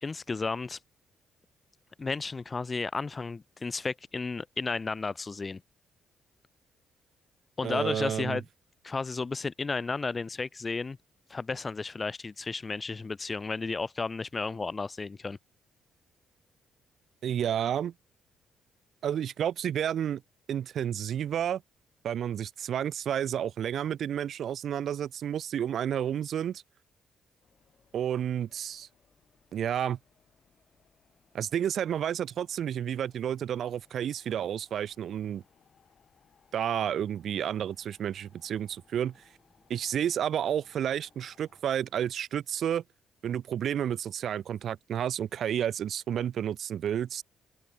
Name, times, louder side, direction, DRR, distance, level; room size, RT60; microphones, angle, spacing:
voice 1, 0.0-0.8 2.0-5.6 7.6-8.4 8.8-11.0 11.3-15.4, left 4 dB, 30° left, 0.4 m, -33 dB
voice 2, 7.6-8.4 17.2-17.9 19.0-20.2 20.5-21.6 22.0-26.6 27.9-28.9 29.5-30.0 31.3-35.4 36.5-39.2 39.7-42.8 43.2-47.2, right 9 dB, 65° right, 0.4 m, -31 dB
sound 1, 27.4-41.6, left 7 dB, 50° left, 3.4 m, -67 dB
sound 2, 37.0-42.3, right 3 dB, 20° right, 6.9 m, -70 dB
cardioid pair, 90°, 0 cm